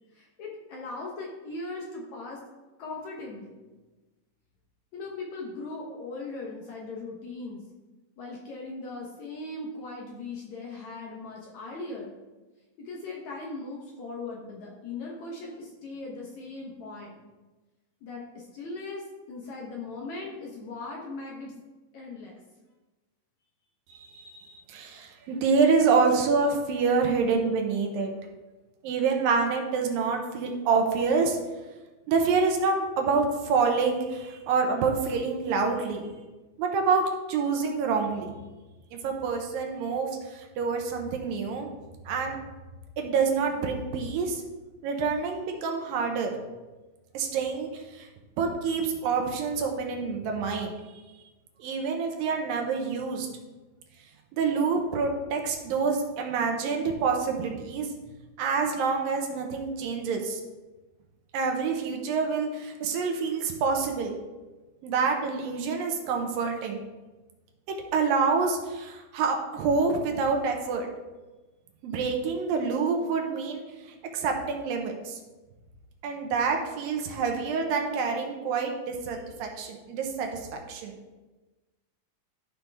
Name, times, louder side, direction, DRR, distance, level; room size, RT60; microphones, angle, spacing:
voice 1, 0.1-2.4 2.8-3.6 4.9-7.6 8.2-12.2 12.8-17.2 18.0-21.6 21.9-22.4, left 3 dB, 65° left, -2 dB, 2.0 m, -39 dB
voice 2, 23.9-28.1 28.8-31.4 32.1-36.1 36.6-38.4 38.9-41.7 42.1-42.4 43.0-44.4 44.8-46.3 47.1-48.1 48.4-50.7 51.6-53.3 54.3-57.9 58.4-60.4 61.3-64.1 64.8-66.8 67.9-70.9 71.8-73.6 74.1-75.2 76.0-80.9, right 5 dB, 75° right, 3 dB, 2.6 m, -27 dB
12.5 x 5.7 x 3.5 m, 1.2 s
omnidirectional pair, 4.3 m